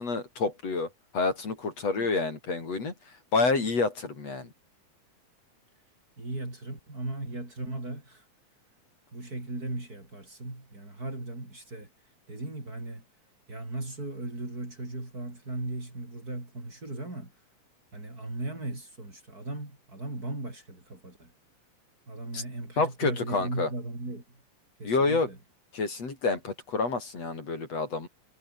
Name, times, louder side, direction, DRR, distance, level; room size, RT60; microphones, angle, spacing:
voice 1, 0.0-2.9 3.3-4.5 22.3-22.4 22.8-23.7 24.8-25.3 25.7-28.1, left 3 dB, 55° left, 5.7 m, -28 dB
voice 2, 6.2-8.2 9.1-11.9 12.3-13.0 13.5-17.3 17.9-21.3 22.1-24.4 24.8-25.4, right 2 dB, 25° right, 6.1 m, -37 dB
omnidirectional pair, 3.6 m